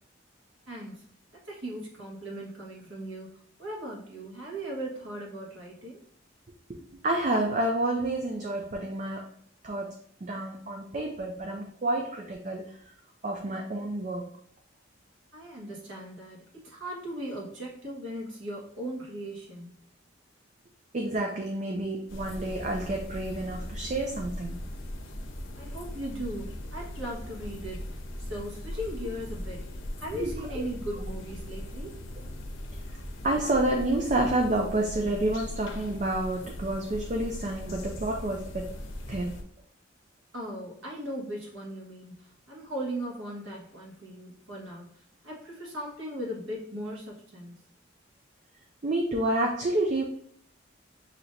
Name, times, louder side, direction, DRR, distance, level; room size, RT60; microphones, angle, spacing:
voice 1, 0.7-1.0 1.3-3.3 3.6-6.0 15.3-19.7 25.6-32.0 40.3-44.9 45.2-47.5, equal, 80° right, -3 dB, 1.4 m, -38 dB
voice 2, 6.8-9.3 9.6-12.8 13.2-14.3 20.9-24.6 30.1-30.6 33.2-38.6 39.1-39.4 48.8-50.0, right 1 dB, 35° right, 1 dB, 0.4 m, -29 dB
sound 1, 22.1-39.4, left 1 dB, 90° left, 0.7 m, -39 dB
5.7 x 2.9 x 2.6 m, 0.62 s
head